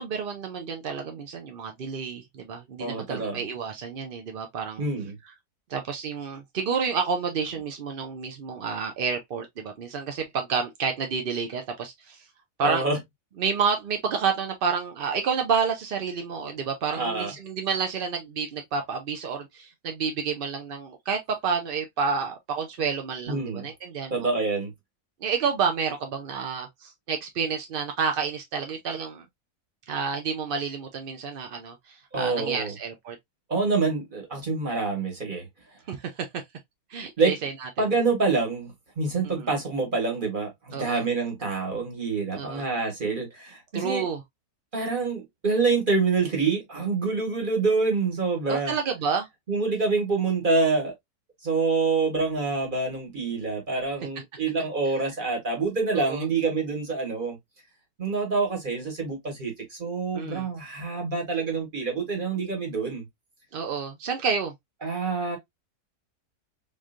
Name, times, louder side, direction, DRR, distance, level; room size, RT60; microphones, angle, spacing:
voice 1, 0.0-4.8 5.7-12.2 12.6-12.9 13.4-24.3 25.2-29.2 29.9-33.2 35.9-36.3 36.9-37.9 39.2-39.5 40.7-41.1 42.3-42.6 43.7-44.2 48.5-49.3 55.9-56.2 60.1-60.5 63.5-64.5, right 6 dB, 60° right, 0.5 m, -29 dB
voice 2, 2.8-3.4 4.8-5.1 12.6-13.0 16.9-17.3 23.3-23.7 24.1-24.7 32.1-32.7 33.5-35.5 37.2-37.3 37.8-38.7 39.0-44.1 44.7-48.7 49.5-50.9 51.4-57.4 58.0-63.1 64.8-65.4, right 4 dB, 35° right, 1.5 m, -26 dB
3.8 x 3.2 x 2.4 m
omnidirectional pair, 1.7 m